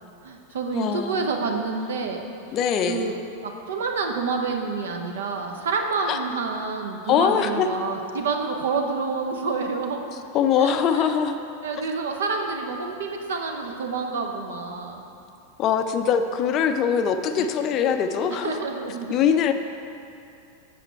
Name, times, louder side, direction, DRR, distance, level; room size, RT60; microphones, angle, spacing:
voice 1, 0.2-2.3 2.9-10.0 10.6-11.1 11.6-15.0 17.4-17.5 18.3-19.3, right 4 dB, 60° right, 3 dB, 0.8 m, -28 dB
voice 2, 0.7-1.3 2.5-3.1 6.1-6.2 7.1-7.7 10.3-11.4 15.6-18.5 19.1-19.5, left 7 dB, 35° left, 8 dB, 0.4 m, -22 dB
7.9 x 6.4 x 4.5 m, 2.6 s
figure-of-eight pair, 90°, 0 cm